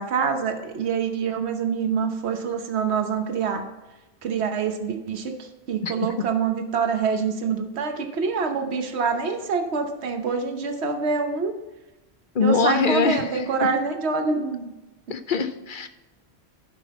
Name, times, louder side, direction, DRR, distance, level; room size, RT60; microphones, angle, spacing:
voice 1, 0.0-3.7 4.2-11.5 12.4-14.7, right 5 dB, 75° right, 6 dB, 1.2 m, -26 dB
voice 2, 12.3-13.4 15.1-15.9, left 5 dB, 55° left, 10 dB, 0.8 m, -23 dB
11.5 x 5.9 x 4.2 m, 1.1 s
omnidirectional pair, 1.1 m